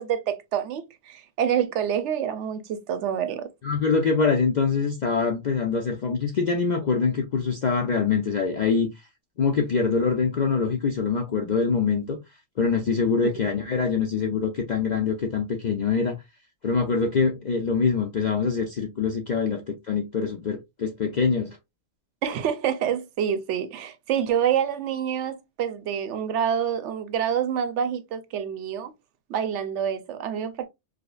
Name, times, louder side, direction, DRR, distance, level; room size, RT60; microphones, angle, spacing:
voice 1, 0.0-3.5 22.2-28.9 29.3-30.7, right 8 dB, 70° right, 0.9 m, -27 dB
voice 2, 3.6-8.9 9.4-12.2 12.6-16.2 16.6-21.6, left 5 dB, 70° left, 0.4 m, -24 dB
4.9 x 2.1 x 2.3 m
omnidirectional pair, 1.3 m